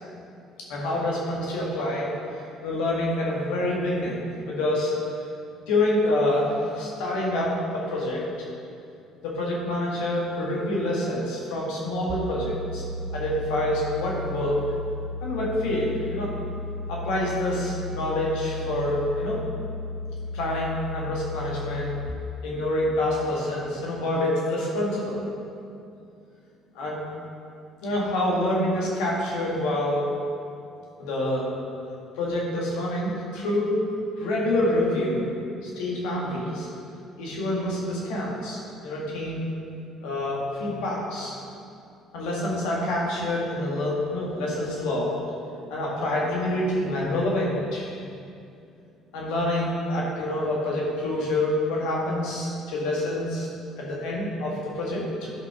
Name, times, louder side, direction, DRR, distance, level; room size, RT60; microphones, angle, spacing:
voice 1, 0.6-2.1 2.6-5.0 5.6-8.5 9.2-12.8 13.1-14.6 15.2-16.3 16.9-19.4 20.3-22.0 22.4-25.2 26.8-27.0 27.8-30.1 31.0-31.5 32.2-33.8 34.2-35.2 35.6-36.7 37.2-39.4 40.0-41.4 42.1-45.1 45.7-48.0 49.1-53.5 53.8-55.3, left 1 dB, 75° left, -4 dB, 1.9 m, -27 dB
sound 1, 12.1-22.1, left 2 dB, 60° right, 0.6 m, -34 dB
11.5 x 5.4 x 3.7 m, 2.5 s
hypercardioid pair, 60°, 0 cm